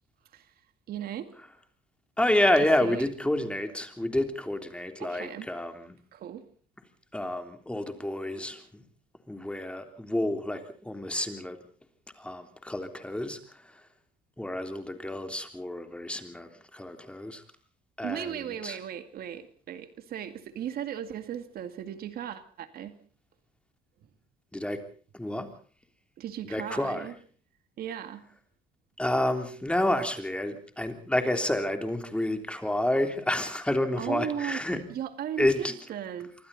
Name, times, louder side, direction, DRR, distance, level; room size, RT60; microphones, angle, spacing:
voice 1, 0.9-1.3 2.8-3.1 5.0-5.5 6.1-6.5 18.0-23.0 26.2-27.2 27.8-28.3 34.0-36.3, right 10 dB, 65° right, 2.2 m, -37 dB
voice 2, 2.2-6.0 7.1-8.8 9.3-11.6 12.2-13.4 14.4-17.4 18.0-18.8 24.5-24.8 25.1-25.5 26.5-27.1 29.0-34.8 35.4-35.7, left 1 dB, 5° left, 3.3 m, -29 dB
26.5 x 24.0 x 4.2 m
cardioid pair, 110°, 17 cm